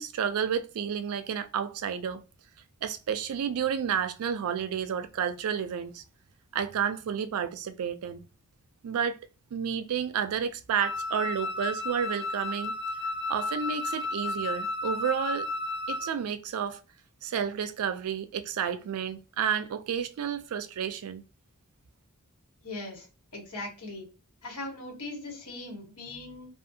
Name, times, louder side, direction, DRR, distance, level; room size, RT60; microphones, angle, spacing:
voice 1, 0.0-2.2 2.8-6.0 6.5-8.2 8.8-9.2 9.5-12.7 13.3-15.5 15.9-16.8 17.2-21.2, right 8 dB, 70° right, 0.3 m, -31 dB
Wind instrument woodwind instrument, 10.8-16.1, left 2 dB, 55° left, 0.5 m, -33 dB
voice 2, 22.6-23.1 23.3-24.1 24.4-26.5, left 2 dB, 85° left, 1.3 m, -39 dB
2.6 x 2.4 x 2.7 m
head